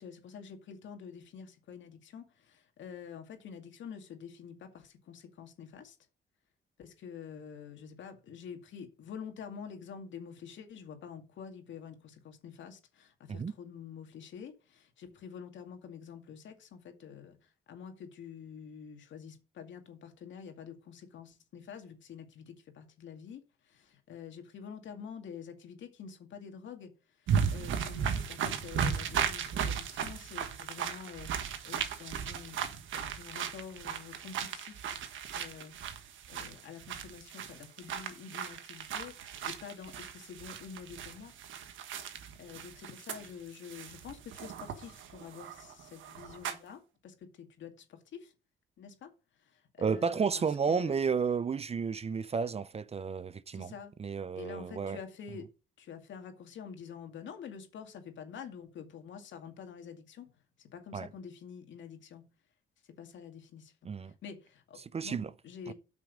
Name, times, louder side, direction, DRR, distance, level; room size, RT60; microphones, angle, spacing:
voice 1, 0.0-6.0 6.8-26.9 27.2-32.6 32.9-34.9 35.3-35.9 36.3-41.3 42.4-48.3 48.8-49.1 49.4-50.9 53.5-53.9 54.4-55.5 55.8-60.3 60.7-62.2 62.9-63.7 64.0-65.2 65.4-65.7, left 7 dB, 70° left, 2.2 m, -47 dB
sound 1, 27.3-46.7, right 7 dB, 75° right, 1.4 m, -36 dB
voice 2, 49.8-53.7 54.0-55.0 60.9-61.1 63.8-64.1 64.8-65.3 65.7-65.8, right 5 dB, 30° right, 0.5 m, -32 dB
8.4 x 6.2 x 5.1 m
cardioid pair, 90°, 20 cm